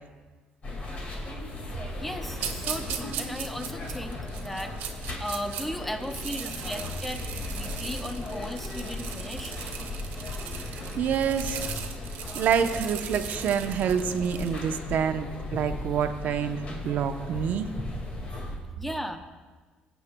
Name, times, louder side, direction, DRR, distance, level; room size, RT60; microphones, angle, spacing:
sound 1, 0.6-18.6, left 2 dB, 40° left, 1.9 m, -37 dB
voice 1, 2.0-4.8 5.2-9.6 18.8-19.2, equal, 5° left, 6 dB, 0.8 m, -36 dB
sound 2, 2.4-5.6 6.0-14.7, right 8 dB, 85° right, 0.9 m, -38 dB
voice 2, 11.0-11.8 12.3-17.7, right 7 dB, 60° right, 7 dB, 0.7 m, -27 dB
18.5 x 8.1 x 2.2 m, 1.4 s
cardioid pair, 115°, 3 cm